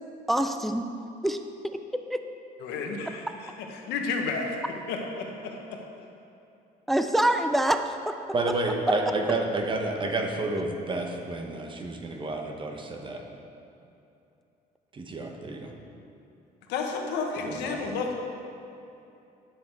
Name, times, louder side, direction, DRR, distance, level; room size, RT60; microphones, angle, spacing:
voice 1, 0.3-0.9 1.2-1.4 2.1-2.2 6.9-8.2, right 1 dB, ahead, 8 dB, 0.4 m, -25 dB
voice 2, 2.6-4.6 4.9-5.8 16.7-18.2, left 4 dB, 85° left, 2 dB, 1.2 m, -32 dB
voice 3, 8.3-13.2 14.9-15.7 17.4-17.9, right 2 dB, 30° right, 3 dB, 1.1 m, -30 dB
10.5 x 6.8 x 4.6 m, 2.8 s
cardioid pair, 110°, 17 cm